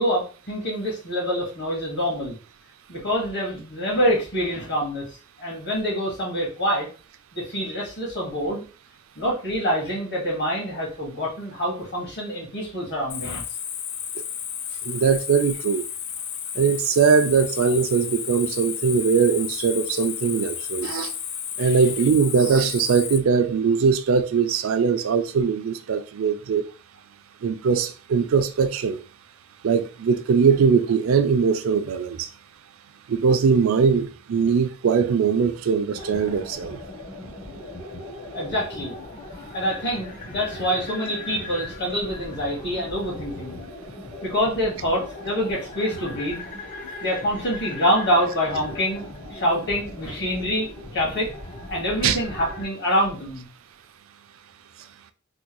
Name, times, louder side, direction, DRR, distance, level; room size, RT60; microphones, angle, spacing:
voice 1, 0.0-2.4 2.9-5.0 5.4-6.9 7.3-8.6 9.1-13.4 21.6-21.8 38.3-38.9 39.5-43.6 44.2-46.5 47.0-51.3 51.7-53.5, equal, 55° left, 1.7 m, -26 dB
Cricket, 13.1-23.2, left 9 dB, 90° left, 0.4 m, -32 dB
voice 2, 14.8-15.8 16.6-21.1 21.6-26.6 27.4-29.0 29.6-32.3 33.1-36.8 52.0-52.2, right 6 dB, 85° right, 0.4 m, -21 dB
sound 1, 36.0-52.7, left 2 dB, 40° left, 1.0 m, -38 dB
3.5 x 2.2 x 2.9 m
head